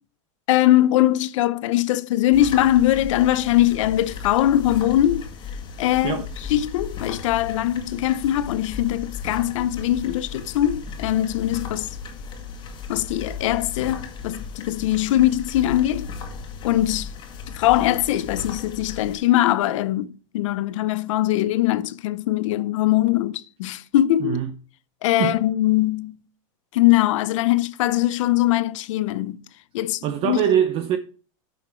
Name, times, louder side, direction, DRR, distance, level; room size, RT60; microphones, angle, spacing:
voice 1, 0.5-5.3 5.8-6.2 6.5-12.0 12.9-16.1 16.6-17.1 17.5-24.4 25.0-26.2 26.7-29.4 29.7-30.4, left 14 dB, 70° left, 0.7 m, -21 dB
sound 1, 2.3-19.2, left 5 dB, 30° left, 1.6 m, -35 dB
voice 2, 24.2-24.5 25.2-25.4 30.0-31.0, right 10 dB, 35° right, 0.6 m, -22 dB
9.0 x 5.8 x 4.4 m
supercardioid pair, 140°, 17 cm